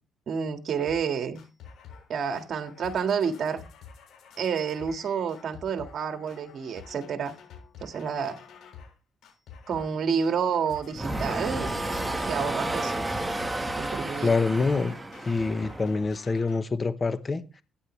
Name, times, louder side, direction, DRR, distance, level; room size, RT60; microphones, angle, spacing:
voice 1, 0.3-1.4 2.1-3.6 4.4-7.3 7.8-8.4 9.7-11.7 12.3-13.0 13.8-14.3, right 6 dB, 60° right, 1.8 m, -29 dB
sound 1, 0.9-1.1 1.4-2.1 2.3-8.9 9.2-10.0 10.2-16.6, left 6 dB, 75° left, 7.2 m, -49 dB
sound 2, 10.9-16.1, right 1 dB, 10° right, 1.4 m, -31 dB
voice 2, 14.2-14.9 15.2-17.6, left 4 dB, 30° left, 0.9 m, -26 dB
16.0 x 9.5 x 3.2 m
cardioid pair, 90°, 0 cm